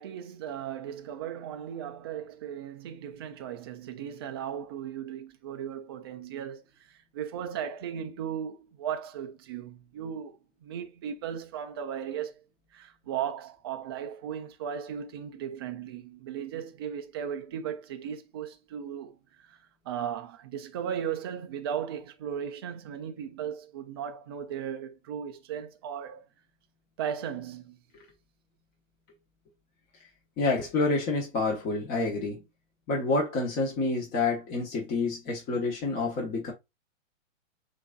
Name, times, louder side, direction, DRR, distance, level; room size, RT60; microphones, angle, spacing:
voice 1, 0.0-12.3 12.7-26.2 27.0-27.8, right 8 dB, 20° right, 0.3 m, -36 dB
voice 2, 30.4-32.4 32.9-36.5, left 3 dB, 25° left, 1.0 m, -28 dB
7.9 x 2.6 x 2.2 m
hypercardioid pair, 130°, 39 cm